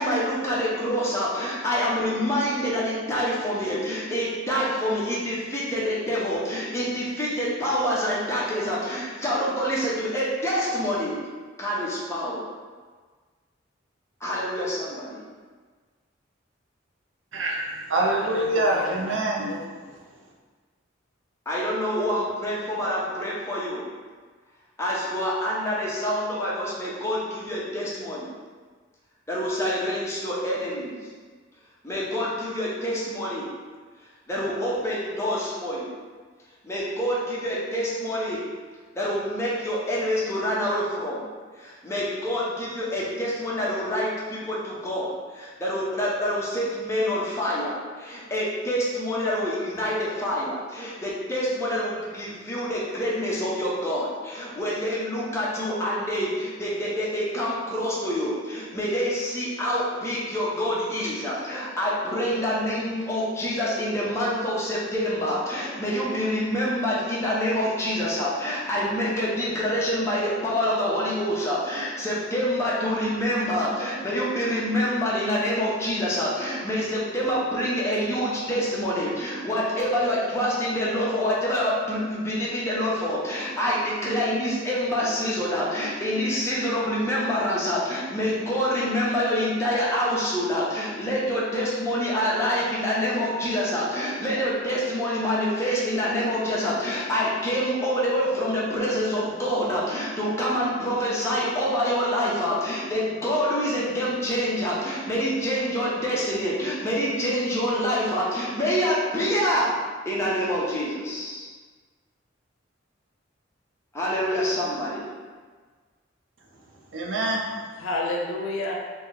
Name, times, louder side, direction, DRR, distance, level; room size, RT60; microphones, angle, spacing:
voice 1, 0.0-11.2 11.6-12.5 14.2-15.2 21.5-23.8 24.8-28.3 29.3-31.0 31.8-33.5 34.3-35.9 36.6-38.4 38.9-41.2 41.6-109.8 110.1-111.5 113.9-115.1, equal, 15° left, -6 dB, 0.6 m, -26 dB
voice 2, 17.3-19.5 116.9-117.5, right 1 dB, 70° right, -1 dB, 0.6 m, -25 dB
voice 3, 18.1-19.6 117.8-118.8, left 2 dB, 90° left, 0 dB, 0.5 m, -31 dB
2.9 x 2.2 x 3.7 m, 1.5 s
head